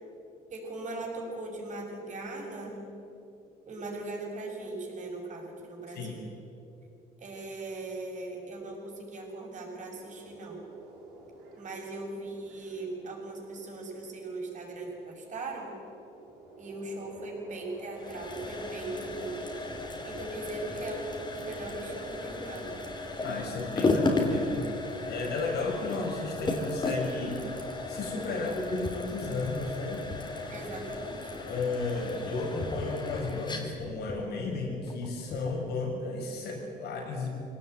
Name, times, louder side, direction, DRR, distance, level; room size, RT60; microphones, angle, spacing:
voice 1, 0.5-2.8 3.7-6.2 7.2-10.6 11.6-15.8 16.6-19.5 20.0-22.8 30.5-31.4, right 2 dB, 45° right, 0 dB, 6.8 m, -39 dB
sound 1, 9.9-28.6, right 2 dB, 80° right, 6.6 m, -51 dB
sound 2, 18.0-35.7, left 2 dB, 25° left, 3.8 m, -35 dB
voice 2, 23.2-24.7 25.1-27.4 27.9-30.0 31.5-37.3, left 3 dB, 75° left, 1 dB, 6.6 m, -33 dB
23.5 x 18.0 x 9.3 m, 2.8 s
cardioid pair, 110°, 17 cm